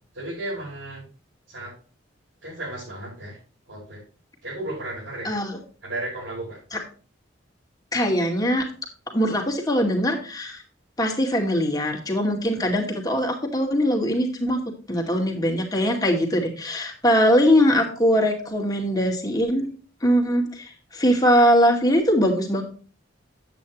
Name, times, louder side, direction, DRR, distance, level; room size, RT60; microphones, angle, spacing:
voice 1, 0.1-1.1 1.5-1.7 2.4-3.4 3.7-4.0 4.4-5.3 5.8-6.6, right 1 dB, 80° right, -9 dB, 5.4 m, -34 dB
voice 2, 5.2-5.6 6.7-6.8 7.9-8.7 9.1-10.6 11.0-14.6 14.9-19.7 20.0-22.6, equal, 20° left, 1 dB, 2.3 m, -21 dB
9.7 x 8.7 x 3.0 m, 0.37 s
head